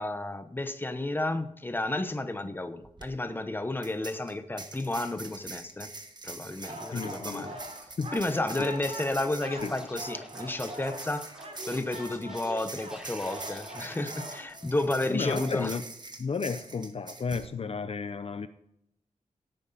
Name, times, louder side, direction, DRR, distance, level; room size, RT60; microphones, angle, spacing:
voice 1, 0.0-5.9 6.2-7.6 8.1-11.3 11.7-15.8, left 2 dB, 15° left, 9 dB, 1.0 m, -32 dB
sound 1, 2.8-3.1 3.8-17.5, right 3 dB, 35° right, 1.4 m, -44 dB
sound 2, 6.6-15.6, right 1 dB, 55° right, 3.2 m, -43 dB
voice 2, 6.9-7.5 8.0-8.2 8.6-8.7 9.6-9.7 15.1-15.8 16.2-18.5, left 5 dB, 50° left, 11 dB, 0.6 m, -33 dB
Scratching (performance technique), 9.4-13.9, equal, 5° right, 3.0 m, -50 dB
16.5 x 9.1 x 4.2 m, 0.77 s
wide cardioid pair, 145°, 13 cm